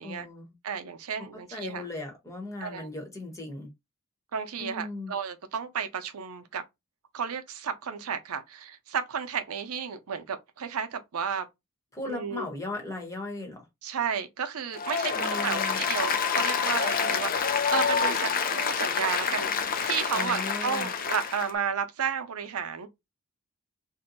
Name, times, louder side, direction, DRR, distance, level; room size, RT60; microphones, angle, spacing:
voice 1, 0.0-0.5 1.5-3.7 4.6-5.1 11.9-13.6 15.1-15.8 20.1-20.9, left 2 dB, 15° left, 1.0 m, -37 dB
voice 2, 0.6-1.8 2.6-2.9 4.3-6.6 7.1-11.5 12.1-12.5 13.8-22.9, right 7 dB, 85° right, 0.6 m, -33 dB
Applause, 14.7-21.5, left 6 dB, 40° left, 0.4 m, -27 dB
2.6 x 2.2 x 3.9 m
head